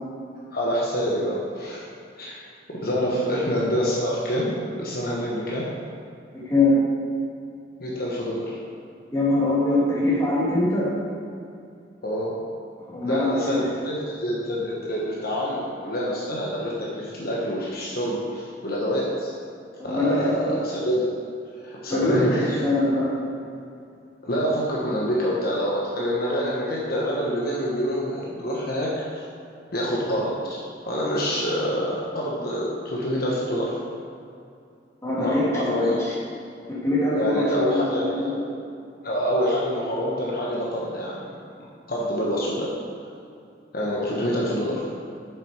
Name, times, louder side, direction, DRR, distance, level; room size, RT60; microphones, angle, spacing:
voice 1, 0.5-1.8 2.2-2.4 2.7-5.7 7.8-8.6 12.0-12.3 13.0-19.3 19.8-21.2 21.6-22.7 24.2-29.2 29.7-30.6 30.8-33.7 35.2-36.0 37.1-38.4 39.0-41.2 41.9-42.7 43.7-44.8, equal, 55° left, -5 dB, 1.2 m, -26 dB
voice 2, 6.3-6.8 9.1-11.0 12.8-13.7 19.8-20.3 21.9-23.2 35.0-36.1 36.7-38.4, left 1 dB, 15° left, -7 dB, 2.2 m, -23 dB
7.3 x 7.0 x 4.8 m, 2.5 s
head